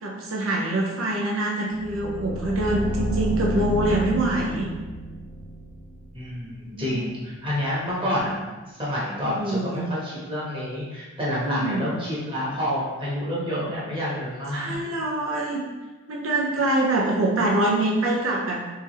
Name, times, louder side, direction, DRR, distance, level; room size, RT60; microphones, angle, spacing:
voice 1, 0.0-4.7 6.4-7.1 9.2-9.8 11.4-11.9 14.5-15.6 16.1-18.6, right 2 dB, 80° right, -2 dB, 0.6 m, -25 dB
sound 1, 1.7-6.6, right 1 dB, 60° left, 0.5 m, -31 dB
voice 2, 6.1-8.4 8.7-14.7 16.9-17.1 17.6-17.9, equal, 25° right, -7 dB, 1.1 m, -28 dB
3.4 x 3.3 x 3.1 m, 1.2 s
head